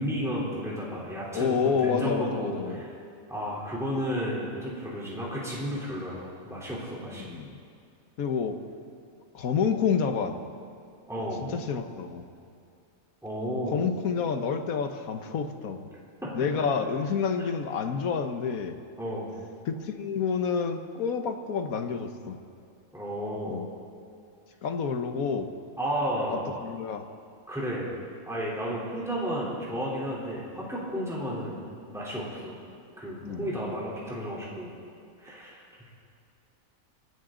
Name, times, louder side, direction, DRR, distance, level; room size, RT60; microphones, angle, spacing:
voice 1, 0.0-1.6 1.8-3.0 3.3-7.3 11.1-11.5 13.2-13.8 19.0-19.4 22.9-23.7 25.8-26.5 27.5-28.0 28.3-31.6 31.9-32.6 33.0-34.7 35.2-35.6, equal, ahead, -7 dB, 3.5 m, -32 dB
voice 2, 1.3-2.8 7.2-7.5 8.2-8.6 9.3-10.4 11.2-12.3 13.7-15.9 16.3-18.8 19.6-22.4 23.5-23.7 24.6-25.5 26.3-27.0 33.2-33.5, left 6 dB, 80° left, 7 dB, 1.5 m, -29 dB
27.5 x 12.5 x 3.9 m, 2.5 s
omnidirectional pair, 1.5 m